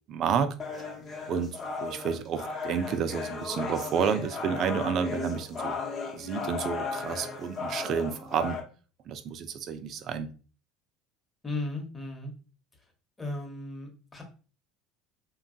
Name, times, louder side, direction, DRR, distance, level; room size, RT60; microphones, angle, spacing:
voice 1, 0.1-0.5 1.3-5.8 6.1-8.6 9.1-10.3, right 7 dB, 50° right, 10 dB, 0.4 m, -30 dB
sound 1, 0.6-8.6, left 4 dB, 40° left, 0.8 m, -36 dB
voice 2, 11.4-12.3 13.2-14.2, left 2 dB, 20° left, 2 dB, 0.9 m, -35 dB
2.9 x 2.3 x 2.6 m, 0.37 s
supercardioid pair, 95°, 0 cm